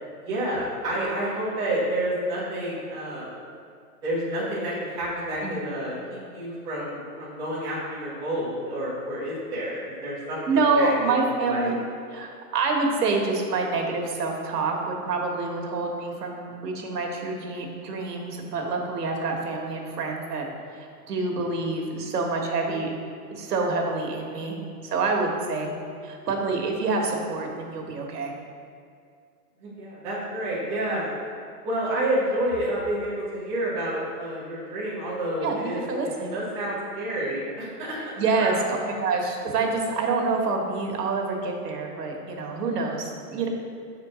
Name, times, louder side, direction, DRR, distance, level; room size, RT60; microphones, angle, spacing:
voice 1, 0.2-3.3 4.0-11.7 29.6-31.1 31.6-37.9 38.3-38.9, right 1 dB, 5° right, -10 dB, 0.7 m, -29 dB
voice 2, 10.5-11.7 12.1-20.5 20.7-22.9 23.3-25.7 26.0-28.3 35.4-36.3 38.2-43.5, right 3 dB, 85° right, 1 dB, 1.4 m, -27 dB
6.2 x 4.4 x 4.9 m, 2.3 s
hypercardioid pair, 175°, 46 cm